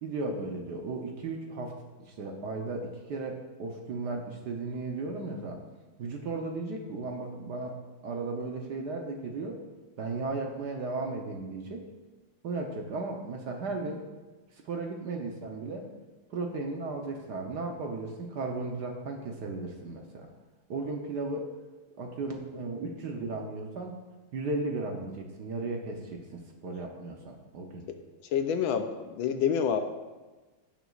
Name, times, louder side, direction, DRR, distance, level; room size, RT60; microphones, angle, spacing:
voice 1, 0.0-1.7 2.0-5.6 6.0-7.8 8.0-9.6 10.0-11.8 12.4-14.0 14.6-15.9 16.3-20.3 20.7-21.5 22.0-24.0 24.3-27.9, right 3 dB, 60° right, 2 dB, 1.2 m, -35 dB
voice 2, 28.3-29.8, left 7 dB, 75° left, 7 dB, 1.3 m, -27 dB
17.0 x 6.1 x 2.4 m, 1.2 s
omnidirectional pair, 2.4 m